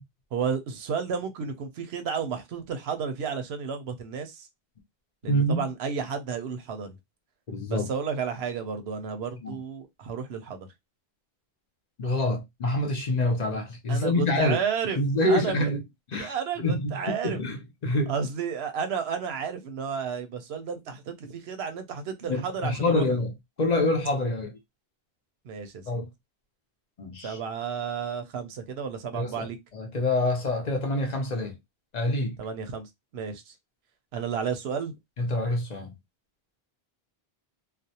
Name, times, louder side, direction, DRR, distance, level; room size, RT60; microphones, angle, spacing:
voice 1, 0.3-4.5 5.2-6.9 7.7-10.7 13.9-15.0 15.3-15.7 16.2-17.4 18.1-23.2 25.4-25.8 27.2-29.6 32.4-33.5 34.1-34.9, right 6 dB, 85° right, 0.8 m, -32 dB
voice 2, 5.3-5.7 7.5-7.9 9.4-9.6 12.0-14.6 15.0-15.8 16.1-17.0 17.2-18.1 22.3-23.3 23.6-24.6 25.9-26.1 27.0-27.4 29.1-31.6 31.9-32.4 35.2-35.9, left 1 dB, 50° left, 0.7 m, -26 dB
2.4 x 2.1 x 2.7 m
omnidirectional pair, 1.0 m